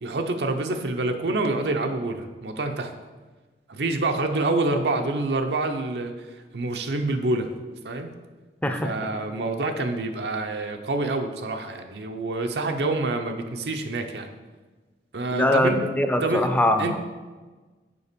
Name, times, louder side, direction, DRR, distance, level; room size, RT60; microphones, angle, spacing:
voice 1, 0.0-2.9 3.7-7.5 7.8-8.1 8.8-14.3 15.1-15.8 16.2-16.5 16.8-17.0, right 2 dB, 75° right, 5 dB, 0.6 m, -27 dB
voice 2, 8.6-8.9 15.3-17.0, left 1 dB, 10° left, 6 dB, 0.5 m, -22 dB
6.9 x 5.0 x 5.1 m, 1.3 s
head